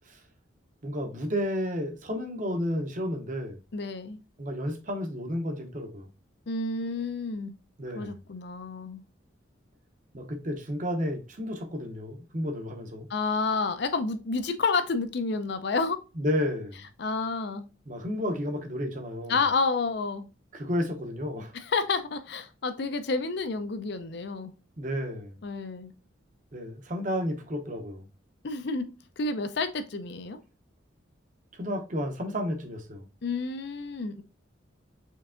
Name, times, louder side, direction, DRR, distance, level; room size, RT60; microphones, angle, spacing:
voice 1, 0.8-3.6 4.4-6.1 7.8-8.1 10.1-13.1 16.2-16.8 17.9-19.4 20.5-21.5 24.8-25.3 26.5-28.1 31.6-33.1, equal, 40° right, 0.7 m, -32 dB
voice 2, 3.7-4.2 6.5-7.5 7.9-9.0 13.1-16.0 17.0-17.7 19.3-20.3 21.5-24.5 25.4-25.9 28.4-28.9 29.2-30.4 33.2-34.2, left 4 dB, 55° left, 0.5 m, -30 dB
4.5 x 3.3 x 2.5 m
head